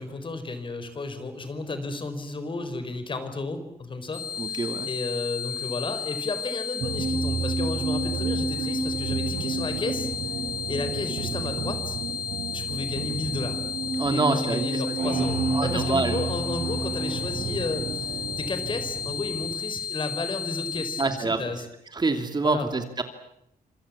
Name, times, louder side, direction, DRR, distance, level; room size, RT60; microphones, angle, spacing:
voice 1, 0.0-10.1 10.7-12.0 12.5-13.6 14.1-21.6 22.4-22.7, left 3 dB, 30° left, 9 dB, 4.5 m, -33 dB
sound 1, 4.1-21.0, left 7 dB, 50° left, 6.4 m, -33 dB
voice 2, 4.4-4.9 14.0-14.6 15.2-16.2 20.7-21.4 21.9-23.0, right 3 dB, 25° right, 7 dB, 2.8 m, -27 dB
sound 2, 6.8-19.5, right 4 dB, 50° right, 5.9 m, -31 dB
sound 3, 9.0-14.1, right 10 dB, 75° right, 1.7 m, -38 dB
27.0 x 26.5 x 7.4 m, 0.79 s
cardioid pair, 130°, 16 cm